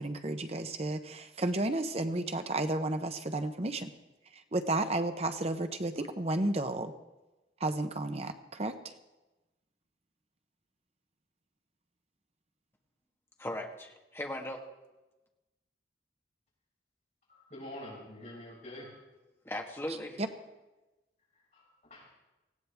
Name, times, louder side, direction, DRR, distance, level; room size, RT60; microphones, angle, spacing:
voice 1, 0.0-3.9 4.5-6.9 7.6-8.7, right 2 dB, 35° right, 8 dB, 0.8 m, -32 dB
voice 2, 13.4-14.6 19.4-20.2, left 1 dB, 15° left, 1 dB, 1.6 m, -38 dB
voice 3, 17.4-18.9 21.5-22.1, left 1 dB, 40° left, -5 dB, 6.1 m, -46 dB
19.0 x 16.0 x 3.5 m, 1.0 s
head